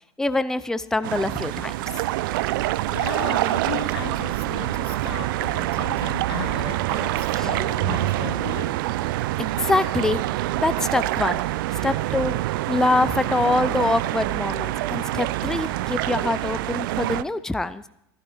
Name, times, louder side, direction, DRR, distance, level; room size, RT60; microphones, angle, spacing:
voice 1, 0.2-1.7 7.4-7.5 9.4-10.2 10.6-11.4 11.8-12.3 12.7-17.8, left 2 dB, 5° left, 0.5 m, -24 dB
sound 1, 1.0-17.2, right 16 dB, 60° right, 0.5 m, -26 dB
voice 2, 2.4-8.9, left 10 dB, 70° left, 1.1 m, -36 dB
27.5 x 11.5 x 3.1 m
figure-of-eight pair, 85°, 13 cm